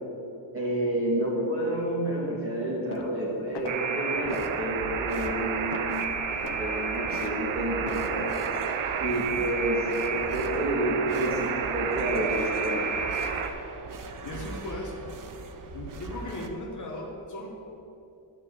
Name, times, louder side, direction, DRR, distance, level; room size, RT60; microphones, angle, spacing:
voice 1, 0.5-6.1 6.6-8.3 9.0-12.9, right 1 dB, 25° right, -5 dB, 2.8 m, -29 dB
sound 1, 2.9-3.2 3.5-3.8 4.3-4.6 5.0-5.1 5.7-6.0 6.4-6.6 7.1-7.4 7.9-8.1, left 8 dB, 60° left, 0.8 m, -40 dB
Alarm, 3.7-13.5, right 6 dB, 90° right, 0.8 m, -31 dB
sound 2, 4.2-16.5, right 3 dB, 45° right, 0.7 m, -41 dB
voice 2, 14.2-15.0 15.7-17.5, left 1 dB, 40° left, -1 dB, 1.2 m, -37 dB
11.5 x 5.1 x 7.3 m, 2.8 s
wide cardioid pair, 160°, 47 cm